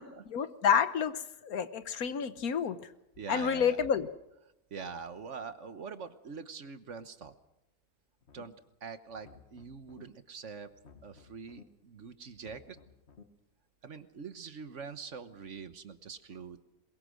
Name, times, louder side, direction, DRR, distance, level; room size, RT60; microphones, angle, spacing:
voice 1, 0.3-2.9 3.3-4.1, left 7 dB, 75° left, 12 dB, 1.5 m, -29 dB
voice 2, 3.2-3.8 4.7-7.3 8.3-8.5 8.8-10.7 11.0-12.8 13.8-16.6, right 5 dB, 55° right, 11 dB, 1.4 m, -44 dB
sound 1, 8.2-8.7 9.1-10.0 10.7-11.6 12.3-13.2, left 5 dB, 45° left, 2.1 m, -56 dB
22.5 x 21.5 x 6.3 m, 0.89 s
omnidirectional pair, 1.6 m